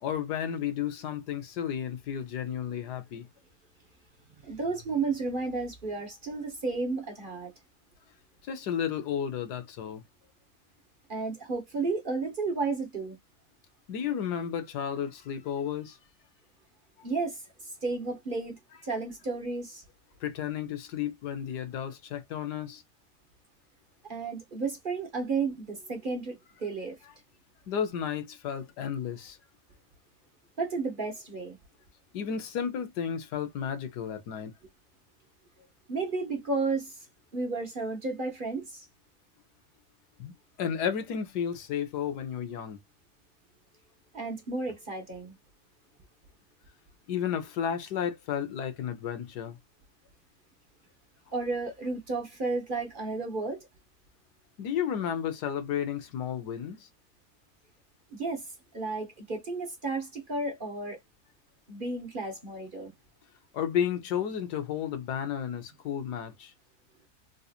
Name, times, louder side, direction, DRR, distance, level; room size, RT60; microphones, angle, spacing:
voice 1, 0.0-3.3 8.4-10.0 13.9-16.0 17.0-17.1 20.2-22.8 27.7-29.4 32.1-34.5 40.2-42.8 47.1-49.6 54.6-56.9 63.5-66.5, left 8 dB, 90° left, 1.5 m, -32 dB
voice 2, 4.4-7.5 11.1-13.2 17.0-19.8 24.0-27.0 30.6-31.6 35.9-37.1 37.3-38.9 44.1-45.4 51.3-53.7 58.1-58.5 58.7-61.0 61.7-62.9, right 3 dB, 40° right, 1.0 m, -32 dB
3.9 x 2.8 x 2.3 m
omnidirectional pair, 1.7 m